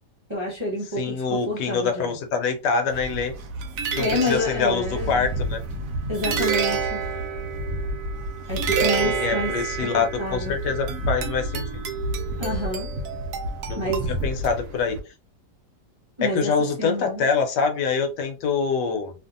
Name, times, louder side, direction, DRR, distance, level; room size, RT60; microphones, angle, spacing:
voice 1, 0.3-2.2 4.0-5.3 6.1-7.0 8.5-9.5 9.8-10.5 12.4-12.9 13.7-14.1 16.2-16.5 16.8-17.3, left 1 dB, 30° right, 0.6 m, -28 dB
voice 2, 1.0-3.3 3.9-5.6 9.0-11.8 13.7-13.8 14.1-15.0 16.2-19.1, left 5 dB, 80° left, 1.2 m, -25 dB
sound 1, 2.9-15.0, right 4 dB, 70° right, 0.8 m, -28 dB
2.8 x 2.6 x 2.5 m
omnidirectional pair, 1.9 m